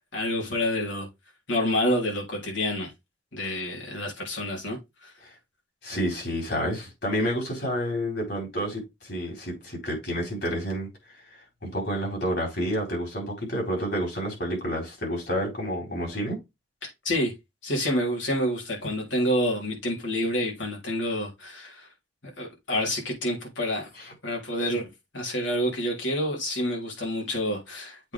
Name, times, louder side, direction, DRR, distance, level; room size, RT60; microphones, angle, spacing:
voice 1, 0.1-1.1 1.5-2.9 3.3-5.1 16.8-17.3 17.6-21.9 22.4-23.9 24.2-24.9 25.1-28.1, left 1 dB, 90° left, 3.6 m, -28 dB
voice 2, 5.8-10.9 11.6-16.4 24.0-24.1, equal, 65° left, 4.3 m, -29 dB
8.0 x 4.1 x 3.5 m
head